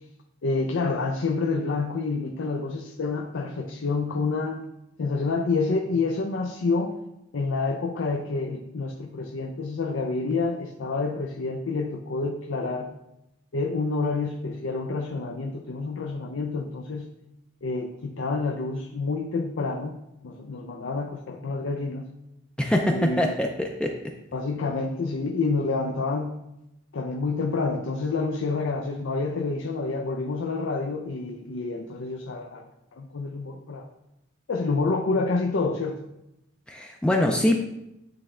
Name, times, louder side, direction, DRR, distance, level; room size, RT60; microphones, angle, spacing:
voice 1, 0.4-4.6 5.0-6.9 7.3-12.9 13.5-17.1 17.6-20.0 20.2-22.1 22.9-23.3 24.3-26.4 26.9-32.7 33.0-33.9 34.5-36.0, left 3 dB, 75° left, 3 dB, 0.5 m, -28 dB
voice 2, 22.6-23.9 36.7-37.6, left 1 dB, 5° left, 1 dB, 0.4 m, -23 dB
8.7 x 3.2 x 3.6 m, 0.88 s
head